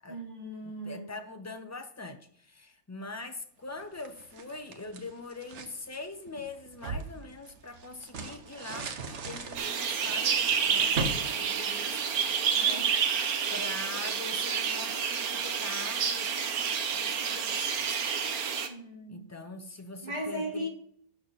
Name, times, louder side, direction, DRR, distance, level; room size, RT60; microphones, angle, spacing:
voice 1, 0.1-1.1 12.6-12.9 18.7-19.3 20.0-20.7, equal, 30° right, -2 dB, 2.7 m, -37 dB
voice 2, 0.6-12.2 12.6-13.2 13.5-17.9 19.1-20.7, left 3 dB, 15° left, 6 dB, 0.7 m, -43 dB
sound 1, 3.8-5.8 6.3-12.3, right 3 dB, 55° right, 1.2 m, -39 dB
sound 2, 9.6-18.7, right 7 dB, 80° right, 1.4 m, -29 dB
12.0 x 6.5 x 4.1 m, 0.62 s
omnidirectional pair, 1.6 m